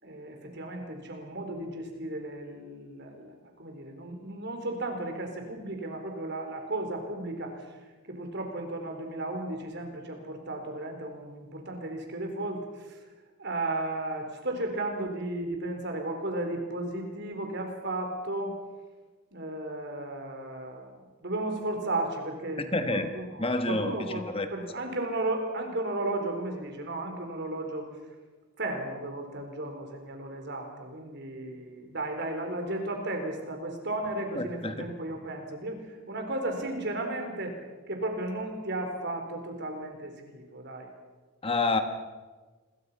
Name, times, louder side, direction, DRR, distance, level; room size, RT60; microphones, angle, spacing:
voice 1, 0.0-7.8 8.0-13.0 13.4-18.6 19.3-22.6 22.9-27.9 28.6-37.6 37.9-40.9, right 2 dB, 50° right, 4 dB, 4.6 m, -34 dB
voice 2, 22.6-23.1 23.4-24.5 34.3-34.7 41.4-41.8, left 2 dB, 25° left, 7 dB, 1.4 m, -28 dB
29.0 x 22.5 x 5.9 m, 1.3 s
head